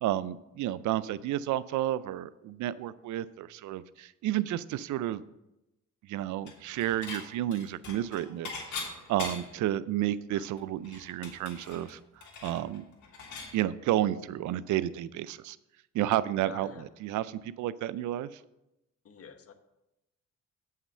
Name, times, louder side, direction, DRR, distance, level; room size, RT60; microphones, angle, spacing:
voice 1, 0.0-5.2 6.1-12.8 13.5-15.6 15.9-18.4, right 13 dB, 75° right, 17 dB, 0.4 m, -31 dB
Dishes pots and pans / Chink clink, 6.5-7.2 7.5-9.6 10.0-10.1 10.4-13.5, left 4 dB, 75° left, 2.2 m, -41 dB
voice 2, 16.4-16.8 19.0-19.5, left 6 dB, 50° left, 8 dB, 1.0 m, -48 dB
8.3 x 5.8 x 5.5 m, 0.91 s
cardioid pair, 90°, 30 cm